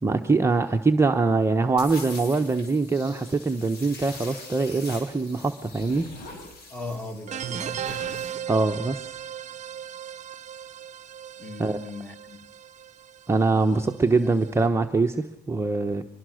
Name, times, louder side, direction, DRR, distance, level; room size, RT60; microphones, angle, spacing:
voice 1, 0.0-6.1 8.5-9.1 11.6-11.8 13.3-16.1, right 3 dB, 15° right, 0.9 m, -23 dB
sound 1, 1.8-8.4, left 3 dB, 70° left, 5.6 m, -44 dB
Zipper (clothing), 5.6-6.5 7.5-7.6 7.8-8.2 8.9-9.1, left 2 dB, 90° left, 5.0 m, -44 dB
voice 2, 6.7-8.2 11.4-12.5 13.7-13.8 14.2-14.3, left 2 dB, 10° left, 2.0 m, -38 dB
sound 2, 7.3-14.6, right 9 dB, 45° right, 0.7 m, -37 dB
23.5 x 21.0 x 6.4 m
cardioid pair, 110°, 17 cm